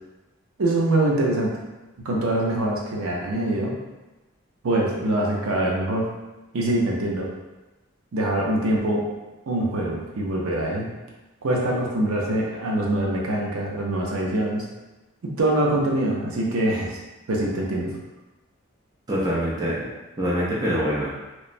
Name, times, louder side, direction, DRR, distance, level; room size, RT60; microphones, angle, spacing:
voice 1, 0.6-1.5 2.0-3.7 4.6-6.1 6.5-7.3 8.1-9.0 9.5-10.9 11.4-14.6 15.2-17.0 17.3-17.9, right 1 dB, 75° right, -2 dB, 0.5 m, -24 dB
voice 2, 19.1-19.9 20.2-21.1, equal, 20° right, -6 dB, 0.4 m, -24 dB
2.9 x 2.1 x 2.5 m, 1.1 s
head